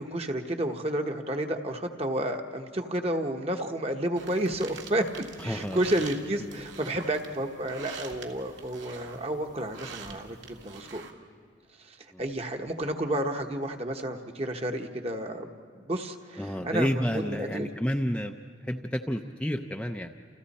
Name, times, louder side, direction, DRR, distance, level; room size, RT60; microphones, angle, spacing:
voice 1, 0.0-11.0 11.8-15.5 15.8-17.7, right 1 dB, 30° right, 4 dB, 1.2 m, -31 dB
sound 1, 4.2-11.1, right 4 dB, 70° right, 2.0 m, -45 dB
voice 2, 5.4-5.8 12.1-12.2 16.4-18.3 18.6-20.1, equal, 5° left, 3 dB, 0.5 m, -30 dB
30.0 x 29.0 x 4.3 m, 2.1 s
head